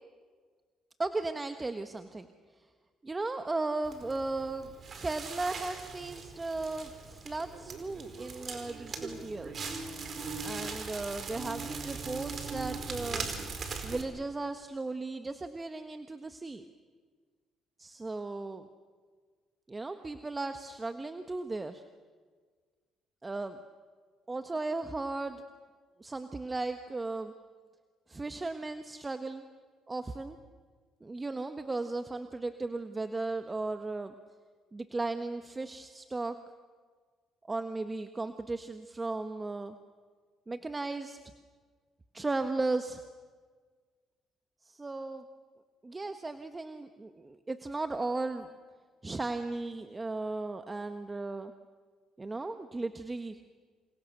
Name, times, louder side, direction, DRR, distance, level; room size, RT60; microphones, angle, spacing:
voice 1, 1.0-2.3 3.0-4.7 5.0-9.7 10.4-13.3 13.8-16.6 17.8-18.7 19.7-21.8 23.2-23.6 24.3-25.4 26.0-27.3 28.1-29.4 29.9-30.4 31.0-34.1 34.7-36.4 37.5-39.7 40.5-41.2 42.1-43.0 44.6-45.3 45.8-48.5 49.0-51.5 52.2-53.4, right 3 dB, 25° right, 8 dB, 1.5 m, -36 dB
Crackle, 3.8-14.0, right 4 dB, 50° right, 4.8 m, -40 dB
28.5 x 27.0 x 6.8 m, 1.5 s
supercardioid pair, 65°, 0 cm